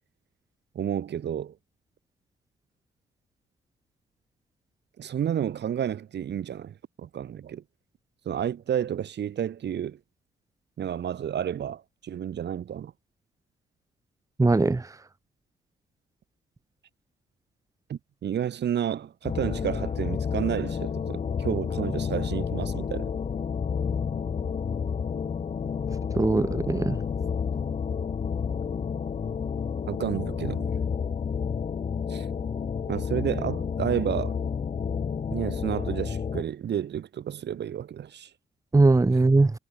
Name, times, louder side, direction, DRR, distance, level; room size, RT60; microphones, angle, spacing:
voice 1, 0.7-1.5 5.0-7.6 8.2-10.0 10.8-12.9 17.9-23.1 29.9-30.6 32.1-32.3 32.9-34.4 35.3-38.3, right 9 dB, 60° right, 2.8 m, -31 dB
voice 2, 14.4-14.9 26.2-27.0 38.7-39.5, right 3 dB, 15° right, 1.2 m, -20 dB
sound 1, 19.2-36.4, left 6 dB, 35° left, 0.8 m, -30 dB
cardioid pair, 90°, 20 cm